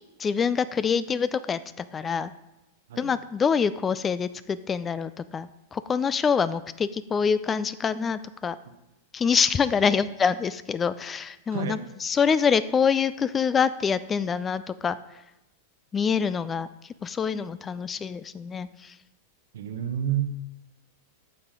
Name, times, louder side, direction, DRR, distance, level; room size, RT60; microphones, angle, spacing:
voice 1, 0.2-2.3 3.0-8.6 9.1-15.0 15.9-18.9, left 6 dB, 20° left, 16 dB, 0.3 m, -26 dB
voice 2, 11.5-11.8 19.5-20.3, right 9 dB, 65° right, 10 dB, 0.8 m, -30 dB
11.5 x 7.2 x 3.8 m, 0.95 s
figure-of-eight pair, 95°, 0 cm